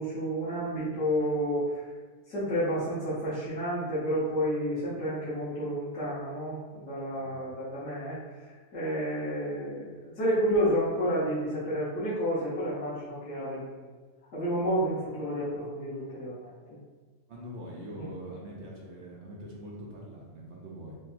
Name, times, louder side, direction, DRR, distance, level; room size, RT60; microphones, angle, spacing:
voice 1, 0.0-1.8 2.3-13.9 14.3-16.8 18.0-18.1, equal, 50° left, -13 dB, 1.5 m, -30 dB
voice 2, 17.3-21.0, equal, 60° right, -3 dB, 0.8 m, -43 dB
5.9 x 2.2 x 2.6 m, 1.4 s
omnidirectional pair, 1.6 m